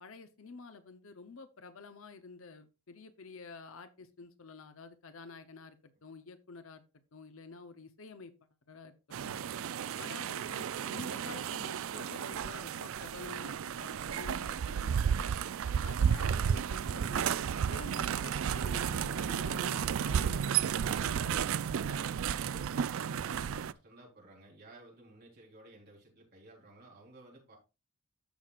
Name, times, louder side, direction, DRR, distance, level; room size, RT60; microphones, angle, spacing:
voice 1, 0.0-6.8 7.1-8.3 8.7-9.0 9.2-9.4 10.0-15.3 15.8-17.3 17.7-21.8, left 4 dB, 65° left, 10 dB, 0.8 m, -49 dB
sound 1, 9.1-23.7, right 8 dB, 65° right, 0.4 m, -33 dB
voice 2, 22.4-27.6, right 2 dB, 45° right, -2 dB, 3.9 m, -55 dB
14.0 x 6.1 x 2.4 m, 0.29 s
head